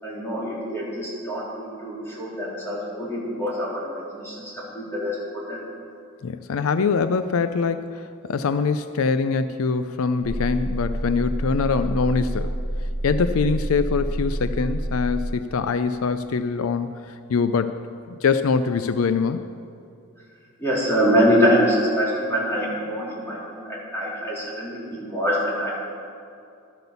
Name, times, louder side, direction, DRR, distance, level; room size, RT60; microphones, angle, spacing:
voice 1, 0.0-5.6 20.6-25.7, equal, 10° left, -7 dB, 3.8 m, -24 dB
voice 2, 6.2-12.6 13.0-17.8 18.1-19.4, left 5 dB, 75° left, 11 dB, 0.4 m, -23 dB
sound 1, 10.2-15.3, right 1 dB, 60° right, 1.8 m, -28 dB
13.0 x 8.0 x 7.0 m, 2.5 s
head